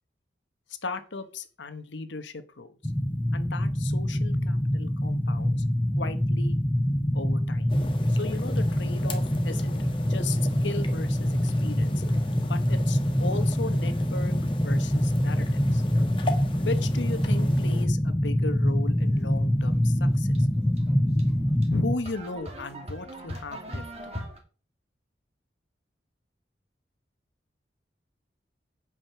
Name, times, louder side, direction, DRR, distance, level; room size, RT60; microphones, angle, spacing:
voice 1, 0.8-2.9 3.3-5.6 5.9-6.6 7.1-7.7 8.1-9.8 10.1-12.0 12.5-15.8 16.6-20.4 21.7-23.8, left 3 dB, 85° left, 10 dB, 1.1 m, -36 dB
sound 1, 2.8-21.9, equal, 10° left, 0.5 m, -25 dB
sound 2, 7.7-17.8, left 1 dB, 30° left, 1.3 m, -39 dB
sound 3, 18.9-24.4, equal, 35° right, 2.0 m, -42 dB
9.1 x 5.0 x 5.9 m, 0.36 s
head